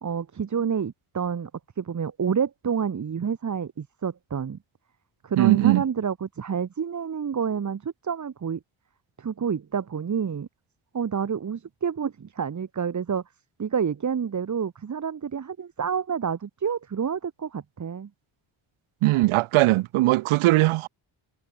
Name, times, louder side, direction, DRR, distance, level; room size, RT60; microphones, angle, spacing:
voice 1, 0.0-1.5 1.8-4.6 5.2-8.6 9.2-10.5 10.9-13.2 13.6-18.1, right 7 dB, 35° right, 1.7 m, -28 dB
voice 2, 5.4-5.8 19.0-20.9, right 18 dB, 90° right, 0.6 m, -20 dB
wide cardioid pair, 145°, 48 cm